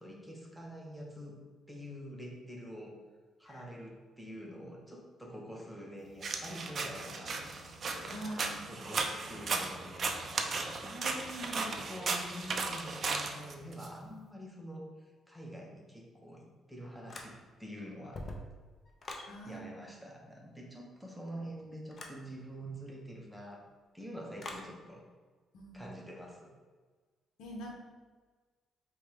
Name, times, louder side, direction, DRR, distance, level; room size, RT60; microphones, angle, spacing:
voice 1, 0.0-1.4 1.7-3.0 3.4-7.4 8.0-8.2 8.7-18.2 19.4-23.6 23.9-25.0 25.7-26.5, equal, ahead, -2 dB, 0.8 m, -46 dB
sound 1, 6.2-13.9, right 4 dB, 50° right, 0.4 m, -36 dB
voice 2, 8.0-8.9 19.3-19.9 25.5-25.9 27.4-27.8, right 1 dB, 80° left, -1 dB, 0.8 m, -44 dB
sound 2, 17.1-17.7 18.0-19.3 21.9-22.2 24.4-24.7, left 1 dB, 40° left, 0.5 m, -44 dB
4.4 x 2.2 x 3.4 m, 1.4 s
cardioid pair, 90°, 0 cm